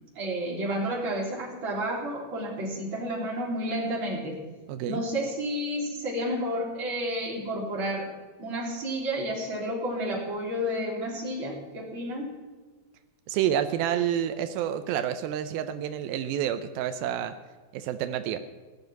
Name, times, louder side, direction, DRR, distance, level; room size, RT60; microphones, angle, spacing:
voice 1, 0.2-4.4 4.9-8.1 8.4-12.3, equal, 30° right, -3 dB, 3.7 m, -31 dB
voice 2, 4.7-5.0 13.3-17.4 17.7-18.4, right 10 dB, 90° right, 9 dB, 2.1 m, -29 dB
17.5 x 7.1 x 9.2 m, 1.3 s
omnidirectional pair, 5.2 m